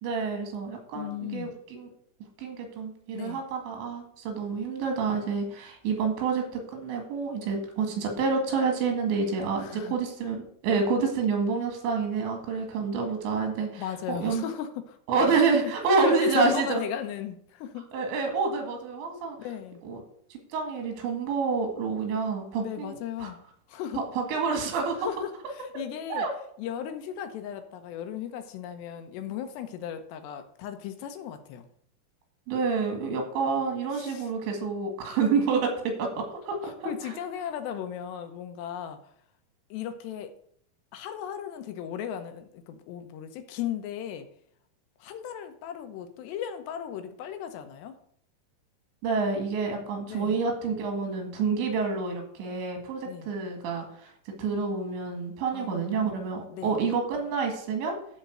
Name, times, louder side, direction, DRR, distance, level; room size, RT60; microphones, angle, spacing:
voice 1, 0.0-1.9 2.4-13.8 14.1-14.4 15.1-16.8 17.9-19.4 19.9-20.0 20.3-23.3 24.0-25.1 26.1-26.3 32.5-36.9 49.0-54.1 54.4-58.0, right 4 dB, 85° right, 3 dB, 4.2 m, -28 dB
voice 2, 0.9-1.5 3.1-3.4 9.6-10.0 13.8-15.0 15.6-15.7 16.0-17.9 19.2-19.8 22.6-23.4 23.7-24.1 25.0-26.3 26.6-31.7 33.9-34.3 36.6-39.1 39.7-40.3 40.9-44.3 45.0-48.0 50.1-50.4 53.1-53.3 55.5-56.1 56.5-56.8, left 9 dB, 80° left, 8 dB, 3.0 m, -36 dB
13.0 x 4.5 x 6.3 m, 0.65 s
omnidirectional pair, 5.1 m